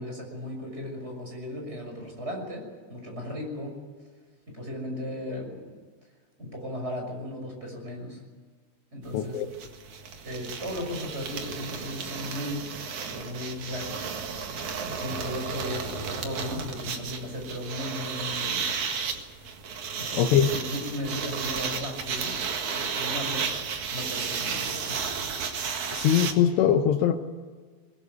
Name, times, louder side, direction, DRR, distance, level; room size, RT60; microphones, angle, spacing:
voice 1, 0.0-3.8 4.5-5.6 6.4-8.2 8.9-9.4 10.2-12.8 13.1-14.2 14.9-18.8 19.9-22.4 22.7-23.5 23.9-25.0, left 1 dB, 15° right, 1 dB, 6.4 m, -36 dB
voice 2, 9.1-9.5 20.2-20.5 25.9-27.1, left 9 dB, 80° left, 4 dB, 3.1 m, -22 dB
sound 1, 9.1-9.2 9.4-26.3, right 6 dB, 50° right, 2.7 m, -33 dB
21.5 x 21.5 x 9.5 m, 1.4 s
omnidirectional pair, 5.1 m